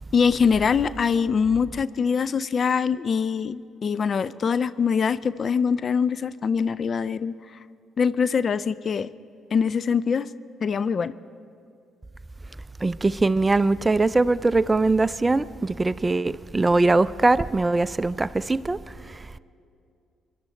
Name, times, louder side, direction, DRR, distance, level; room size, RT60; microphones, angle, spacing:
voice 1, 0.1-7.3 8.0-9.1 9.5-10.3 10.6-11.1, left 6 dB, 45° left, 0.4 m, -23 dB
voice 2, 12.8-18.8 19.1-19.2, right 3 dB, 20° right, 0.4 m, -21 dB
23.5 x 11.5 x 4.2 m
hypercardioid pair, 45°, 0 cm